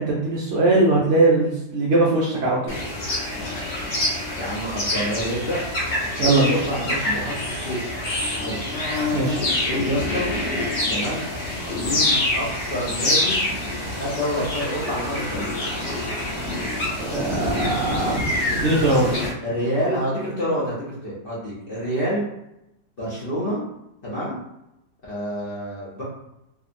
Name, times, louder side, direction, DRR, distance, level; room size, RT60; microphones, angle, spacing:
voice 1, 0.0-2.8 6.2-6.5 9.1-9.5 17.0-18.2 18.5-19.1, right 2 dB, 80° right, -5 dB, 0.6 m, -20 dB
sound 1, 2.7-19.3, left 1 dB, 50° left, 0.8 m, -26 dB
voice 2, 4.4-5.6 6.2-7.9 8.3-8.7 9.6-10.3 10.9-11.3 11.7-13.4 13.9-15.7 17.9-18.3 19.4-22.2 23.0-23.6 24.0-24.4 25.1-26.0, equal, 75° left, -7 dB, 0.5 m, -28 dB
2.7 x 2.5 x 2.5 m, 0.86 s
omnidirectional pair, 1.8 m